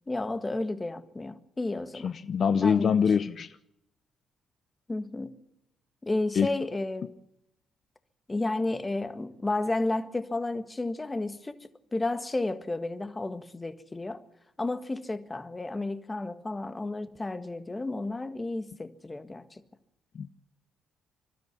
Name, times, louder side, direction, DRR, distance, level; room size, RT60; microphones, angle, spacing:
voice 1, 0.1-2.1 2.6-2.9 4.9-5.3 6.0-7.2 8.3-11.6 11.9-14.2 14.6-19.5, left 2 dB, 20° left, 1.6 m, -32 dB
voice 2, 1.9-3.6 6.4-6.5 20.1-20.3, left 6 dB, 55° left, 0.7 m, -25 dB
25.0 x 12.5 x 9.5 m
cardioid pair, 90°, 0 cm